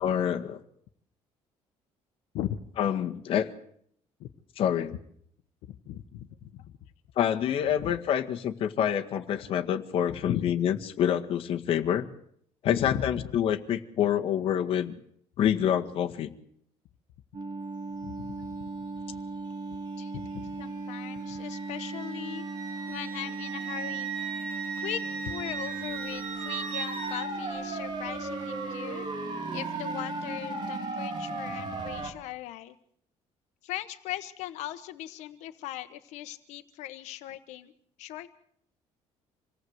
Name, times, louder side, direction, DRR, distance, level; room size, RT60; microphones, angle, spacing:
voice 1, 0.0-0.6 2.8-3.5 4.6-4.9 7.2-12.1 12.6-14.9 15.4-16.3, left 9 dB, 55° left, 4 dB, 1.8 m, -27 dB
voice 2, 5.7-6.3 6.5-6.7 7.8-7.9 10.3-10.4 12.8-13.3 18.0-18.7 19.7-22.4 22.9-24.1 24.6-25.0 25.2-29.1 29.5-32.7 33.6-37.7 38.0-38.3, left 13 dB, 90° left, 9 dB, 1.2 m, -38 dB
sound 1, 17.3-32.1, right 3 dB, 40° right, 4.3 m, -36 dB
Wind instrument woodwind instrument, 21.5-27.3, right 6 dB, 60° right, 3.4 m, -38 dB
27.0 x 18.0 x 8.1 m, 0.68 s
cardioid pair, 160°, 11 cm